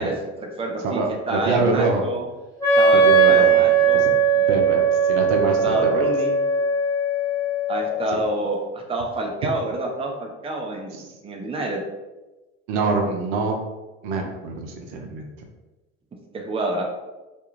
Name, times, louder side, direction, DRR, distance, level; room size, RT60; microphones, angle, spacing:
voice 1, 0.0-2.3 2.8-4.0 5.6-6.4 7.7-10.9 11.2-11.8 16.3-16.9, right 2 dB, 15° right, 1 dB, 0.5 m, -28 dB
voice 2, 0.8-2.0 2.9-3.6 3.9-4.1 4.5-4.8 5.1-6.1 12.7-13.6 14.0-15.3, right 3 dB, 70° right, 2 dB, 0.6 m, -24 dB
Wind instrument woodwind instrument, 2.6-8.2, right 4 dB, 10° left, 1.1 m, -19 dB
2.5 x 2.3 x 3.0 m, 1.1 s
hypercardioid pair, 70°, 36 cm